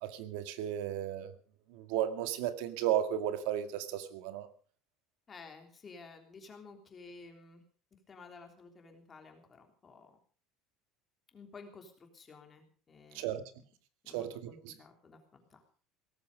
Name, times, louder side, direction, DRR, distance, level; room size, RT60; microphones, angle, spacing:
voice 1, 0.0-1.3 1.7-4.5 13.1-13.4 14.1-14.7, right 11 dB, 75° right, 9 dB, 2.0 m, -34 dB
voice 2, 5.3-7.6 8.1-10.2 11.3-13.4 14.0-15.6, left 4 dB, 20° left, 4 dB, 3.3 m, -53 dB
17.5 x 14.0 x 5.2 m, 0.41 s
cardioid pair, 160°, 0 cm